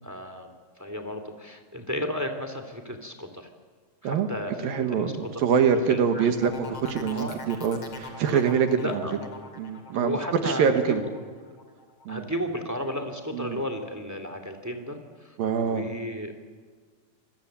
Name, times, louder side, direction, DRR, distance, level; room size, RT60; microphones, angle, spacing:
voice 1, 0.0-3.5 4.0-5.4 5.9-6.5 7.1-7.4 8.2-8.4 8.8-9.1 9.9-11.1 12.1-16.5, equal, 5° right, 7 dB, 1.4 m, -34 dB
voice 2, 4.6-6.5 6.9-8.8 9.6-10.2 10.4-11.0 12.1-12.2 13.3-13.6 15.4-15.9, right 7 dB, 70° right, 7 dB, 3.2 m, -24 dB
sound 1, 6.4-12.1 12.4-12.9, left 3 dB, 40° left, 3.8 m, -43 dB
26.0 x 21.5 x 8.7 m, 1.6 s
omnidirectional pair, 4.4 m